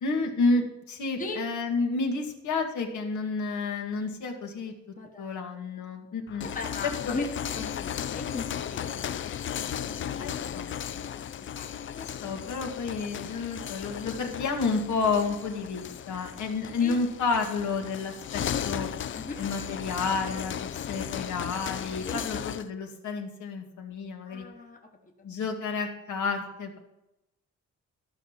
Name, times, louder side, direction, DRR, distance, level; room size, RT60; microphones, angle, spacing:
voice 1, 0.0-4.7 5.2-6.5 7.0-7.2 10.2-10.8 11.9-18.9 19.4-24.5 25.2-26.8, left 4 dB, 80° left, 2 dB, 2.1 m, -30 dB
voice 2, 4.9-5.4 6.4-7.3 7.5-9.3 9.8-10.4 10.9-12.4 16.8-17.0 19.1-19.4 22.0-22.2 24.3-25.1, left 3 dB, 25° left, 2 dB, 1.3 m, -39 dB
sound 1, 6.3-22.7, left 9 dB, 45° left, 0.4 m, -36 dB
13.5 x 6.3 x 5.8 m, 0.90 s
wide cardioid pair, 160°, 29 cm